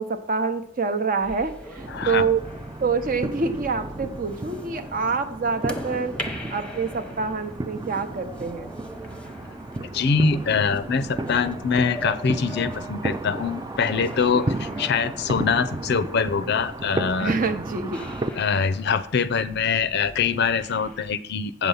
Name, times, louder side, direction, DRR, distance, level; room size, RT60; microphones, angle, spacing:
voice 1, 0.0-2.4 2.8-6.1 6.5-8.7 14.3-14.4 17.2-18.0, right 4 dB, 45° right, 9 dB, 0.8 m, -26 dB
sound 1, 1.2-21.1, left 1 dB, 5° left, 0.8 m, -41 dB
sound 2, 1.8-18.3, right 2 dB, 20° right, 0.4 m, -33 dB
voice 2, 1.9-2.2 9.9-17.4 18.4-21.7, left 5 dB, 60° left, 15 dB, 0.5 m, -24 dB
8.3 x 6.8 x 5.6 m, 0.71 s
head